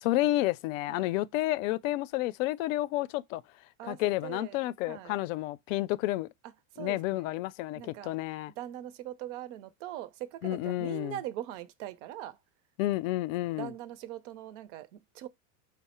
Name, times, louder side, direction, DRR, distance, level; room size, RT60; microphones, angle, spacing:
voice 1, 0.0-3.4 3.8-6.3 6.8-8.5 10.4-11.2 12.8-13.7, left 17 dB, 70° left, 0.5 m, -30 dB
voice 2, 3.8-4.6 4.9-5.2 6.8-7.3 7.8-8.1 8.6-12.4 13.6-15.3, right 13 dB, 60° right, 0.6 m, -41 dB
4.7 x 2.1 x 4.2 m
supercardioid pair, 160°, 41 cm